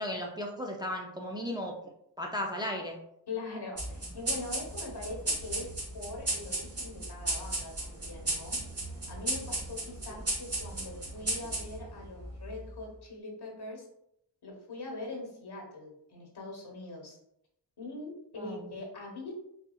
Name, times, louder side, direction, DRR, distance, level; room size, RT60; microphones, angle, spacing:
voice 1, 0.0-1.8 2.2-3.0 18.4-18.7, left 1 dB, 10° right, 0 dB, 0.4 m, -35 dB
voice 2, 3.3-8.6 9.1-13.9 14.4-17.2 17.8-19.3, left 2 dB, 60° left, -1 dB, 1.3 m, -42 dB
sound 1, 3.8-12.7, right 2 dB, 35° right, 1.3 m, -35 dB
4.0 x 2.6 x 2.3 m, 0.76 s
cardioid pair, 50°, 44 cm